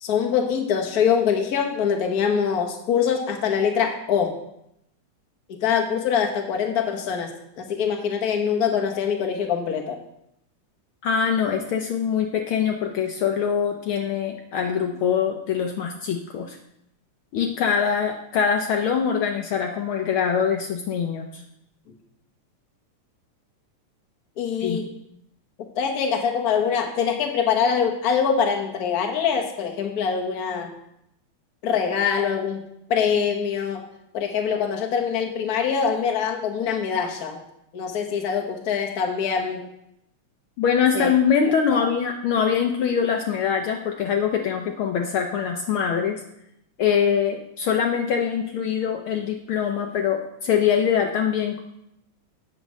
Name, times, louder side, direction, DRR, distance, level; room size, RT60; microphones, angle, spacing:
voice 1, 0.0-4.4 5.5-7.3 7.6-10.0 24.4-24.9 25.8-30.7 31.6-32.6 32.9-33.8 34.1-37.4 37.7-39.6 40.9-41.1 41.4-41.8, left 7 dB, 55° left, 3 dB, 1.0 m, -24 dB
voice 2, 11.0-16.6 17.3-21.4 24.6-24.8 40.6-46.2 46.8-51.6, left 7 dB, 85° left, 3 dB, 1.1 m, -23 dB
8.3 x 6.6 x 6.3 m, 0.80 s
omnidirectional pair, 3.3 m